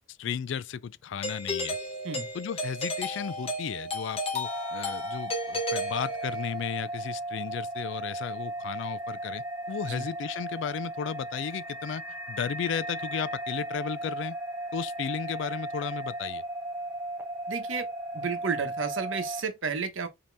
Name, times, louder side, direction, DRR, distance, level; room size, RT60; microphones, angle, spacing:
voice 1, 0.2-1.8 2.3-12.0 12.3-14.4 14.7-16.4, left 7 dB, 65° left, 0.3 m, -34 dB
Doorbell, 1.2-6.6, left 1 dB, 30° left, 0.9 m, -33 dB
sound 1, 4.4-19.4, right 1 dB, 10° right, 0.8 m, -36 dB
voice 2, 17.5-17.9 18.1-20.1, right 5 dB, 70° right, 1.0 m, -32 dB
5.2 x 2.9 x 3.4 m
head